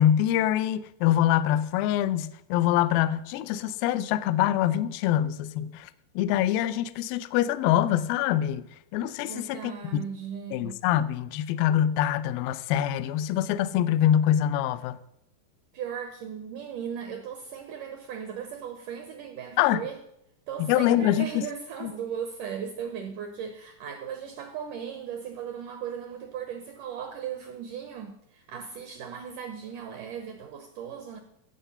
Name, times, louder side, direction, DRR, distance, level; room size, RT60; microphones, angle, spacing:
voice 1, 0.0-5.9 6.2-8.6 8.9-10.0 10.5-15.0 19.6-19.8 20.6-21.4 21.8-21.9, left 11 dB, 80° left, 2.1 m, -24 dB
voice 2, 9.2-10.8 15.7-20.0 20.5-31.2, right 8 dB, 75° right, 1.9 m, -37 dB
15.5 x 7.9 x 5.6 m
omnidirectional pair, 4.7 m